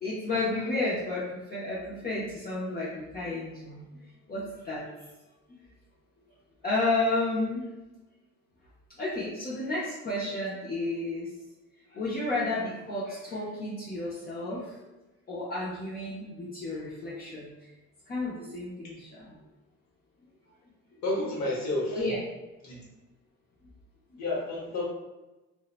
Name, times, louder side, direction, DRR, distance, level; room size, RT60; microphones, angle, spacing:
voice 1, 0.0-3.8 4.3-4.8 6.6-7.7 9.0-11.3 11.9-14.8 15.3-17.5 18.1-19.4 21.9-22.2, left 2 dB, 30° left, -8 dB, 0.6 m, -32 dB
voice 2, 21.0-22.0 22.6-22.8 24.2-24.8, left 2 dB, 65° left, -4 dB, 1.1 m, -30 dB
2.6 x 2.1 x 2.4 m, 1.0 s
cardioid pair, 90°, 30 cm